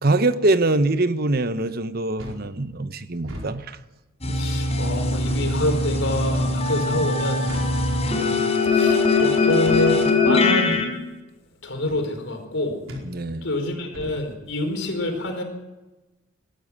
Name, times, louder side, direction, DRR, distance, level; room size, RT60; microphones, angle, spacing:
voice 1, 0.0-3.8 13.0-13.5, right 2 dB, 45° right, 0.9 m, -23 dB
sound 1, 2.2-2.5 3.2-3.5 4.2-4.5 5.2-5.5 6.3-6.6 7.5-7.8 8.6-8.9 9.7-9.9 10.7-10.9 11.9-12.1 12.9-13.1 13.9-14.2, equal, 80° right, 4.9 m, -37 dB
sound 2, 4.2-10.8, left 3 dB, 30° left, 4.8 m, -21 dB
voice 2, 4.3-7.5 7.8-10.8 11.6-12.8 13.4-15.4, left 1 dB, 65° left, 4.8 m, -27 dB
22.0 x 13.0 x 9.8 m
head